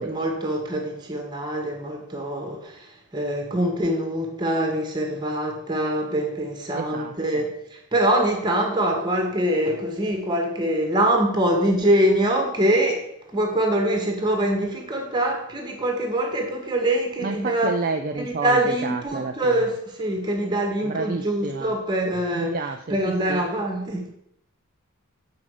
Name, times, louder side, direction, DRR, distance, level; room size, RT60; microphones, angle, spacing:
voice 1, 0.0-17.7 18.2-22.5 22.9-24.1, right 1 dB, 20° right, 2 dB, 1.5 m, -24 dB
voice 2, 6.7-7.4 17.2-19.7 20.8-21.7 22.3-23.5, right 4 dB, 40° right, 5 dB, 0.4 m, -30 dB
7.4 x 5.1 x 4.9 m, 0.75 s
head